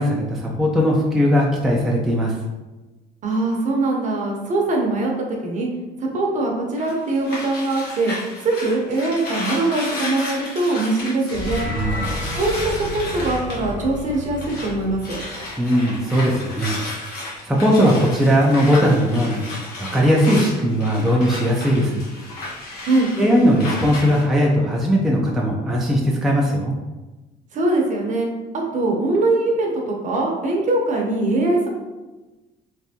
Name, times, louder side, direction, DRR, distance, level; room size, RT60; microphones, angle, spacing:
voice 1, 0.0-2.4 11.7-12.1 15.6-16.8 17.4-19.4 19.8-22.0 23.2-26.8, equal, ahead, -3 dB, 0.5 m, -18 dB
voice 2, 3.2-5.7 6.0-8.1 8.4-11.7 12.3-15.2 22.8-23.1 27.5-28.3 28.7-31.8, right 2 dB, 45° right, 0 dB, 0.8 m, -22 dB
sound 1, 6.8-14.7 15.0-24.2, left 2 dB, 70° left, 1.1 m, -33 dB
sound 2, 11.2-15.6, left 1 dB, 25° left, 0.8 m, -31 dB
3.4 x 2.6 x 2.7 m, 1.1 s
cardioid pair, 110°, 17 cm